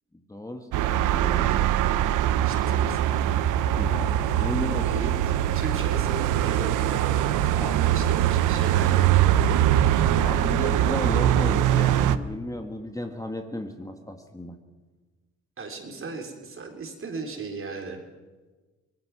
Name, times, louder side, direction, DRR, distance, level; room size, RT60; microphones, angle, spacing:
voice 1, 0.1-1.7 3.3-3.5 3.8-4.9 7.6-8.0 10.0-14.5, left 1 dB, 10° left, 5 dB, 1.7 m, -35 dB
sound 1, 0.7-12.2, right 11 dB, 90° right, 0.8 m, -22 dB
voice 2, 2.3-3.1 4.7-5.2 5.5-10.1 15.6-18.0, right 4 dB, 45° right, 4 dB, 3.8 m, -37 dB
24.5 x 19.0 x 6.1 m, 1.3 s
cardioid pair, 90°, 30 cm